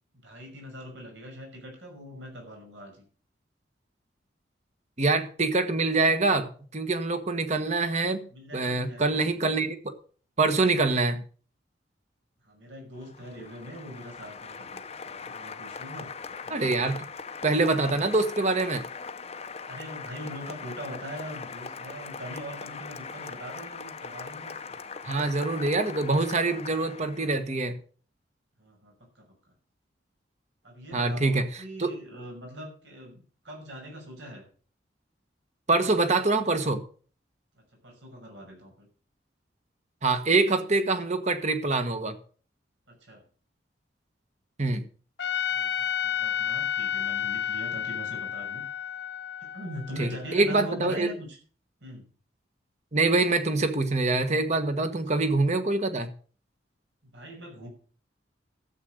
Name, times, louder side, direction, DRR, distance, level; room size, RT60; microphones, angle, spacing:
voice 1, 0.1-3.0 8.3-9.5 12.4-16.1 16.4-17.0 19.7-25.0 28.6-29.3 30.6-34.4 37.5-38.9 42.9-43.2 45.5-48.6 49.4-51.4 51.8-52.1 55.1-55.2 57.1-57.7, equal, 85° right, 6.1 m, -42 dB
voice 2, 5.0-8.3 8.5-9.9 10.4-11.2 16.5-17.0 17.4-18.9 25.0-27.8 30.9-31.9 35.7-36.8 40.0-42.2 44.6-44.8 50.0-51.1 52.9-56.1, right 3 dB, 40° right, 1.4 m, -25 dB
Applause, 13.0-27.4, left 5 dB, 35° left, 0.8 m, -40 dB
Trumpet, 45.2-50.4, left 9 dB, 75° left, 1.3 m, -31 dB
12.5 x 7.8 x 6.6 m
head